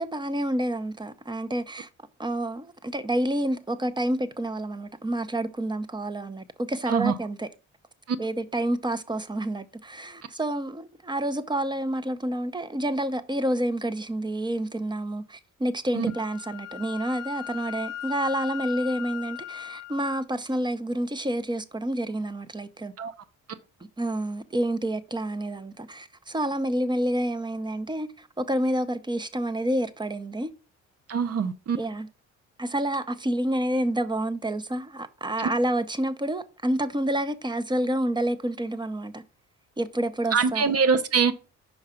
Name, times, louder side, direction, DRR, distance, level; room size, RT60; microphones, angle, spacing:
voice 1, 0.0-1.9 2.2-7.5 8.2-22.9 24.0-30.5 31.8-32.1 32.6-39.2 39.8-40.8, right 1 dB, 15° right, 0.7 m, -29 dB
Wind instrument woodwind instrument, 16.1-20.2, left 11 dB, 60° left, 0.8 m, -38 dB
voice 2, 31.1-31.8 40.3-41.3, right 5 dB, 55° right, 0.7 m, -23 dB
5.6 x 4.6 x 5.0 m
cardioid pair, 90°, 30 cm